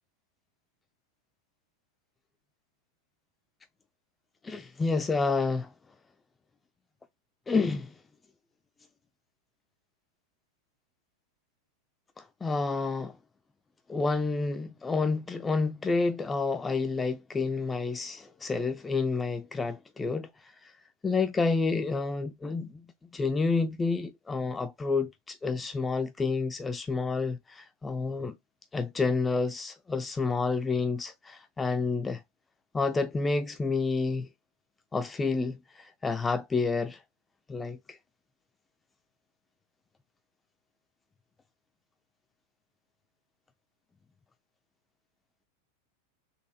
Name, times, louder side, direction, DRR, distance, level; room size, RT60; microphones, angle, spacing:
voice 1, 4.4-5.7 7.5-7.9 12.2-13.2 13.9-20.7 21.0-22.9 23.1-28.3 28.7-32.2 32.7-34.3 34.9-37.0 37.5-38.0, left 4 dB, 15° left, 0.3 m, -29 dB
4.1 x 2.7 x 2.7 m
figure-of-eight pair, 90°, 0 cm